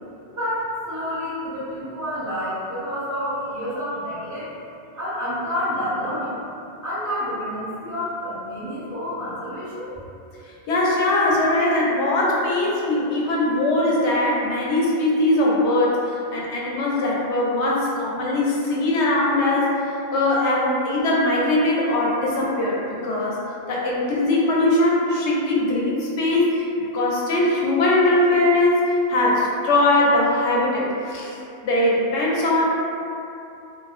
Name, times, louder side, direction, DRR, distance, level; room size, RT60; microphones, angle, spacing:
voice 1, 0.3-4.5 5.0-6.3 6.8-9.9, equal, 20° right, -13 dB, 0.8 m, -29 dB
voice 2, 10.7-19.8 20.1-23.4 23.7-31.3 31.6-32.7, left 1 dB, 85° left, -5 dB, 0.9 m, -21 dB
2.6 x 2.0 x 2.4 m, 2.6 s
omnidirectional pair, 1.1 m